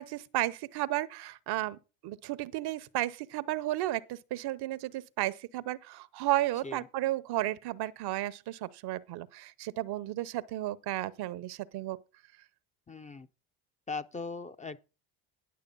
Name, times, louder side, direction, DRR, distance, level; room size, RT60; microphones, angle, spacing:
voice 1, 0.0-12.0, right 15 dB, 60° right, 0.8 m, -33 dB
voice 2, 12.9-13.3 13.9-14.8, left 4 dB, 15° left, 0.5 m, -39 dB
10.5 x 6.4 x 5.3 m
supercardioid pair, 85°, 44 cm